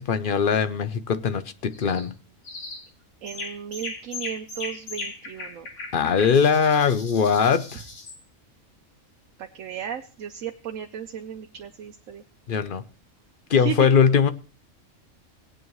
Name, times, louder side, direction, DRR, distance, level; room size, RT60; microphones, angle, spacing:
voice 1, 0.0-2.1 5.9-7.8 12.5-12.8 13.5-14.3, left 6 dB, 50° left, 0.7 m, -21 dB
sound 1, 1.7-2.1 2.4-2.9 3.3-8.2, left 3 dB, 65° left, 2.0 m, -38 dB
voice 2, 3.2-5.7 9.4-12.2 13.5-13.9, right 9 dB, 85° right, 1.1 m, -35 dB
18.0 x 8.8 x 3.1 m
omnidirectional pair, 1.3 m